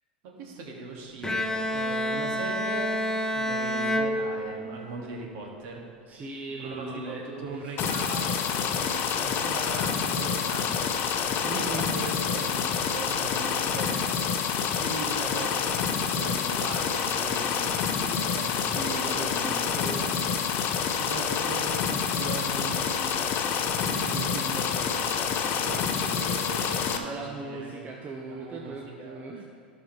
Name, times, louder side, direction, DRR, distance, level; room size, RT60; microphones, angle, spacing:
voice 1, 0.2-3.0 3.3-5.8 6.6-14.0 14.6-23.2 23.8-27.2 27.4-27.8 28.3-29.2, right 3 dB, 55° right, -1 dB, 2.0 m, -39 dB
Bowed string instrument, 1.2-5.0, equal, 10° left, 0.7 m, -28 dB
voice 2, 6.1-8.0 11.4-12.0 18.6-20.3 25.7-25.9 27.0-29.4, right 3 dB, 30° right, 1 dB, 0.8 m, -38 dB
sound 1, 7.8-27.0, left 7 dB, 45° left, 0.8 m, -28 dB
15.5 x 5.5 x 3.2 m, 2.5 s
hypercardioid pair, 90°, 5 cm